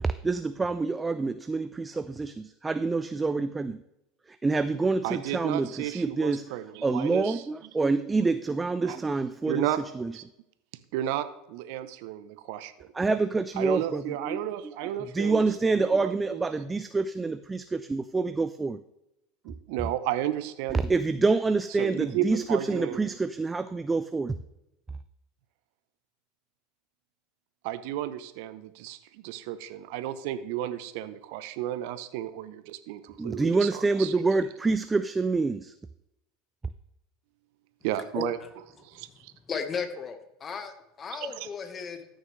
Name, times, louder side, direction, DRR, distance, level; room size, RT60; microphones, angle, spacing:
voice 1, 0.0-3.8 4.3-6.4 6.8-9.7 10.0-10.1 12.9-14.4 15.1-18.8 20.7-24.3 33.2-35.7, right 3 dB, 15° right, 12 dB, 0.4 m, -27 dB
voice 2, 5.0-7.4 8.8-9.0 9.4-9.8 10.1-10.2 10.9-12.9 13.6-16.5 19.4-20.8 21.8-23.0 27.6-34.1 37.8-38.4 38.8-39.3 41.1-41.5, right 12 dB, 65° right, 12 dB, 0.8 m, -33 dB
voice 3, 39.5-42.1, left 6 dB, 30° left, 7 dB, 1.3 m, -35 dB
14.0 x 6.4 x 3.2 m, 0.88 s
hypercardioid pair, 85°, 0 cm